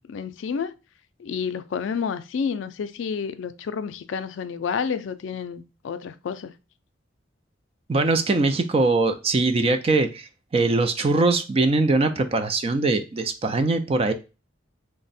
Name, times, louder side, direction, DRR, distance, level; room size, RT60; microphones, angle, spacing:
voice 1, 0.1-0.7 1.2-6.5, left 6 dB, 70° left, 0.4 m, -30 dB
voice 2, 7.9-14.1, right 3 dB, 30° right, 0.4 m, -22 dB
3.4 x 2.1 x 4.0 m
head